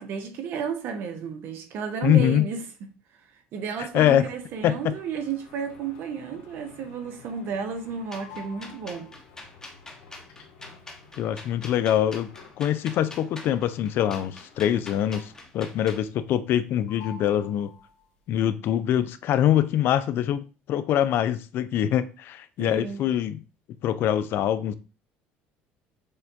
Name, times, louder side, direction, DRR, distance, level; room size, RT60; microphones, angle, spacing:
voice 1, 0.0-2.6 3.1-9.1 22.6-23.0, right 6 dB, 60° right, 0.7 m, -32 dB
voice 2, 2.0-2.5 3.9-4.2 4.6-4.9 11.2-12.3 12.6-17.7 18.3-23.4 23.8-24.7, left 11 dB, 60° left, 0.4 m, -24 dB
sound 1, 4.2-15.7 16.0-16.6 16.9-18.2, left 6 dB, 85° left, 1.1 m, -50 dB
sound 2, 8.1-16.0, left 2 dB, 15° left, 1.0 m, -44 dB
6.4 x 2.2 x 2.6 m
supercardioid pair, 105°, 4 cm